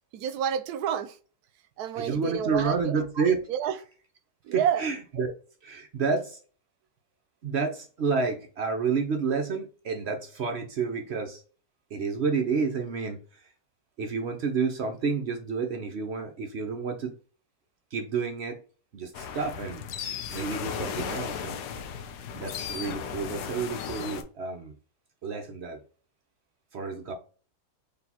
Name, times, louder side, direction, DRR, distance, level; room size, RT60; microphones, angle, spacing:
voice 1, 0.1-1.2 1.8-3.0 3.5-3.8 4.4-4.8, right 9 dB, 75° right, 1.1 m, -29 dB
voice 2, 1.9-3.4 4.5-5.3 5.6-6.4 7.4-11.4 11.9-13.2 14.0-17.1 17.9-18.6 18.9-19.8 20.3-21.6 22.4-24.7 25.2-25.8 26.7-27.1, right 5 dB, 60° right, 0.7 m, -29 dB
sound 1, 19.1-24.2, left 7 dB, 85° left, 1.2 m, -35 dB
4.1 x 3.3 x 2.8 m
omnidirectional pair, 1.7 m